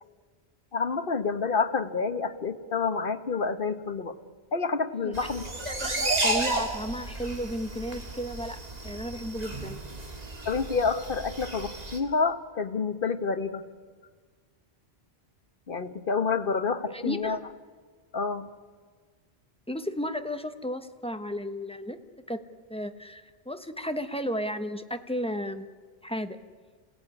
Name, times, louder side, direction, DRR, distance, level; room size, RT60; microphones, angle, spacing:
voice 1, 0.7-4.1 4.5-5.5 10.4-13.6 15.7-17.4 18.1-18.5, left 4 dB, 60° left, 10 dB, 1.4 m, -28 dB
sound 1, 5.1-12.0, right 2 dB, 40° right, 2.4 m, -33 dB
voice 2, 5.6-9.8 16.9-17.4 19.7-22.0 22.3-22.4 22.7-25.7 26.0-26.4, equal, 5° left, 8 dB, 1.1 m, -34 dB
27.5 x 17.5 x 9.8 m, 1.5 s
omnidirectional pair, 1.1 m